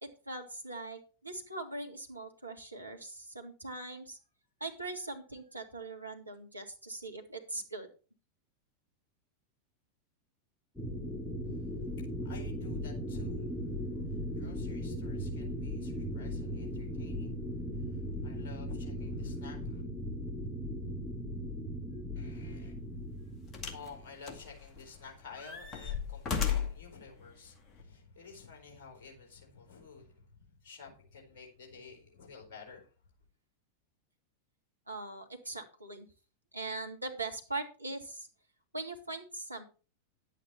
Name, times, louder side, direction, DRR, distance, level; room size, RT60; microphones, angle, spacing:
voice 1, 0.0-4.2 4.6-7.9 34.9-36.1 36.5-38.3 38.7-39.6, right 2 dB, 85° right, 1.9 m, -41 dB
sound 1, 10.8-24.1, equal, 5° left, 2.4 m, -38 dB
voice 2, 11.4-19.8 22.1-22.7 23.7-32.9, left 5 dB, 50° left, 4.3 m, -52 dB
sound 2, 22.3-22.5 23.5-23.9 24.3-25.0 25.4-26.9 27.7-27.8, left 7 dB, 30° left, 2.1 m, -34 dB
10.5 x 8.4 x 4.3 m
figure-of-eight pair, 90°, 0 cm